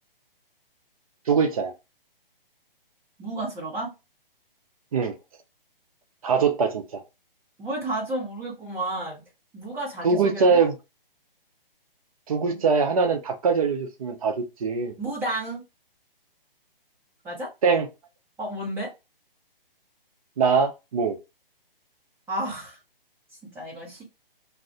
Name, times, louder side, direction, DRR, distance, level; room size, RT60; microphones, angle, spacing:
voice 1, 1.3-1.7 4.9-5.1 6.2-7.0 10.0-10.8 12.3-14.9 17.6-17.9 20.4-21.2, right 5 dB, 40° right, 0.5 m, -22 dB
voice 2, 3.2-3.9 7.6-9.2 9.5-10.6 12.4-12.6 15.0-15.6 17.2-17.5 18.4-18.9 22.3-22.8 23.4-24.0, right 1 dB, 5° right, 0.8 m, -32 dB
2.5 x 2.4 x 3.5 m
figure-of-eight pair, 140°, 29 cm